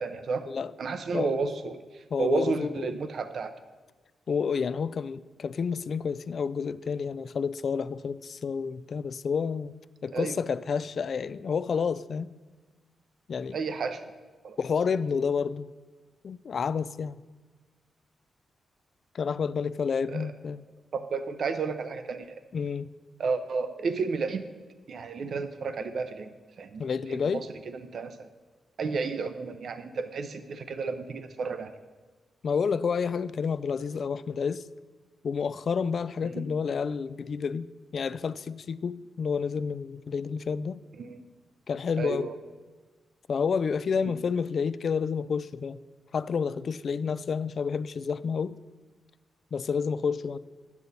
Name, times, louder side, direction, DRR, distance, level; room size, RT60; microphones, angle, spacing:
voice 1, 0.0-0.5 0.8-3.5 10.1-10.4 13.5-14.1 14.4-14.6 20.1-20.3 20.9-22.3 23.2-24.4 24.9-26.3 26.6-26.8 27.1-28.3 28.8-31.7 36.2-36.4 41.0-41.2 42.0-42.3, right 4 dB, 60° right, 0.6 m, -32 dB
voice 2, 2.1-3.0 4.3-9.7 10.0-12.3 13.3-13.6 14.6-15.7 16.2-17.2 19.1-20.6 22.5-22.9 26.8-27.4 32.4-34.6 35.2-37.7 37.9-40.8 41.7-42.3 43.3-45.8 46.1-48.6 49.5-50.4, left 6 dB, 50° left, 0.3 m, -29 dB
12.0 x 8.3 x 4.1 m
wide cardioid pair, 130°, 0 cm